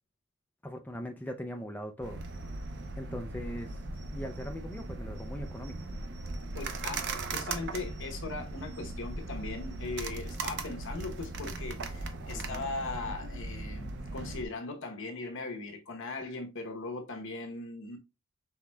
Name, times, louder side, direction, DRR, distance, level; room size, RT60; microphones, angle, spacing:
voice 1, 0.6-2.2 3.0-3.8 4.1-5.8 12.3-12.7, equal, 10° left, 0.4 m, -40 dB
sound 1, 2.0-14.4, right 2 dB, 50° right, 0.7 m, -38 dB
voice 2, 6.5-18.0, left 3 dB, 60° left, 1.0 m, -39 dB
5.8 x 3.5 x 2.3 m
head